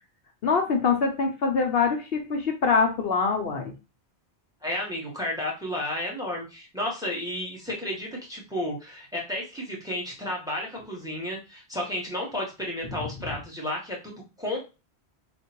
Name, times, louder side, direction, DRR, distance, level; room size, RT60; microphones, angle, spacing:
voice 1, 0.4-3.7 13.3-13.4, left 5 dB, 65° left, 3 dB, 0.9 m, -24 dB
voice 2, 4.6-14.6, left 1 dB, 5° right, -3 dB, 1.4 m, -32 dB
3.6 x 2.5 x 4.4 m, 0.29 s
omnidirectional pair, 1.1 m